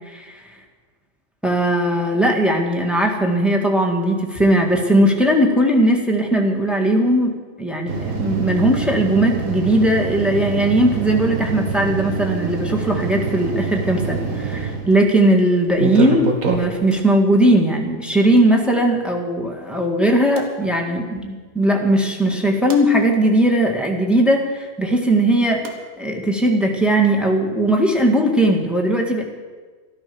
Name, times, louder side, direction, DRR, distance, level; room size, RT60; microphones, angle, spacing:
voice 1, 0.1-0.4 1.4-25.7 26.0-29.2, right 1 dB, ahead, 1 dB, 1.8 m, -18 dB
sound 1, 7.9-14.9 15.7-16.9 18.4-18.5 20.4-20.5 22.3-22.8 25.6-25.7, right 5 dB, 90° right, 1.9 m, -25 dB
13.0 x 12.5 x 7.0 m, 1.4 s
omnidirectional pair, 1.4 m